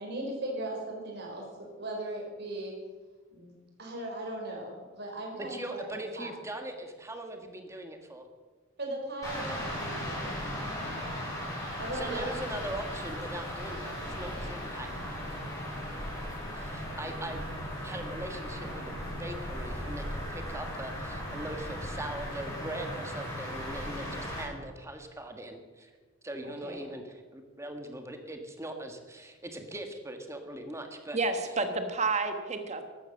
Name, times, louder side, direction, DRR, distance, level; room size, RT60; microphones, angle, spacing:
voice 1, 0.0-2.7 3.3-3.5 3.8-6.3 8.8-10.4 11.8-12.3 26.4-26.8, right 1 dB, 55° right, 0 dB, 4.8 m, -38 dB
voice 2, 5.4-8.3 10.9-11.1 11.5-14.9 16.5-17.5 17.8-25.9 26.2-31.2, right 1 dB, 15° right, 5 dB, 1.6 m, -41 dB
sound 1, 9.2-24.4, equal, 15° left, 6.3 m, -37 dB
voice 3, 31.1-32.9, right 3 dB, 35° right, 7 dB, 1.6 m, -30 dB
14.5 x 12.5 x 6.5 m, 1.4 s
head